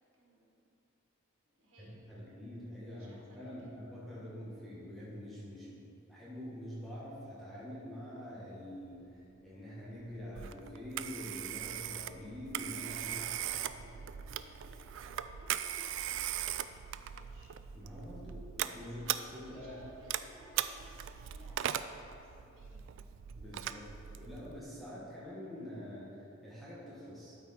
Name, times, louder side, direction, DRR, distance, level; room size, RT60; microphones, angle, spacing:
voice 1, 0.1-0.6 1.5-2.1 2.9-3.8 5.6-5.9 12.9-17.5 18.8-23.1, right 1 dB, 80° right, -4 dB, 2.0 m, -60 dB
voice 2, 1.8-5.8 6.1-13.1 17.7-19.0 19.3-19.9 23.3-27.4, left 1 dB, ahead, -9 dB, 1.5 m, -46 dB
sound 1, 8.7-17.4, left 3 dB, 75° left, 0.4 m, -64 dB
Telephone, 10.4-24.6, right 11 dB, 65° right, 0.3 m, -40 dB
12.5 x 4.5 x 4.3 m, 2.6 s
head